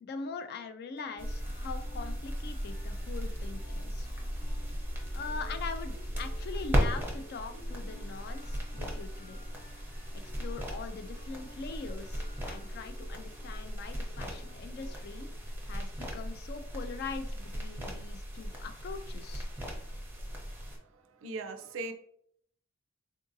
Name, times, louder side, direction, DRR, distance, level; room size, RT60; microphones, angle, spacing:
voice 1, 0.0-4.1 5.1-9.4 10.1-15.3 15.7-19.5, left 4 dB, 50° left, 9 dB, 0.3 m, -42 dB
sound 1, 1.0-16.6, left 1 dB, 35° left, 0.9 m, -56 dB
sound 2, 1.2-20.8, equal, 10° right, 0.6 m, -36 dB
voice 2, 20.8-21.9, right 3 dB, 65° right, 7 dB, 0.4 m, -40 dB
3.6 x 2.5 x 2.6 m, 0.67 s
head